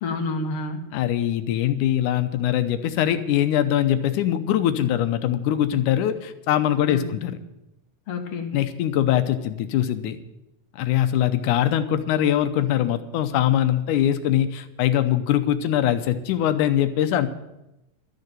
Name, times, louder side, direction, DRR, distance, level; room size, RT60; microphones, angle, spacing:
voice 1, 0.0-0.9 6.8-7.2 8.1-8.6, left 3 dB, 60° left, 5 dB, 1.9 m, -29 dB
voice 2, 0.9-7.4 8.5-10.2 10.7-17.3, left 11 dB, 85° left, 10 dB, 2.2 m, -22 dB
12.5 x 6.7 x 8.9 m, 0.91 s
omnidirectional pair, 3.6 m